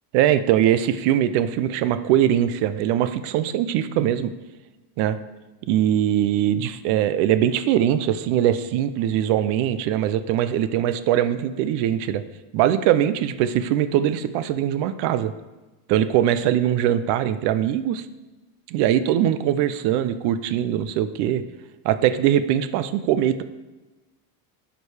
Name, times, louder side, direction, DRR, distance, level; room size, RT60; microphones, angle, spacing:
voice 1, 0.1-4.3 5.0-5.2 5.7-12.2 12.5-15.3 15.9-18.0 18.7-21.4 21.8-23.4, right 11 dB, 60° right, 12 dB, 0.7 m, -21 dB
11.0 x 5.2 x 4.9 m, 1.1 s
supercardioid pair, 135°, 45 cm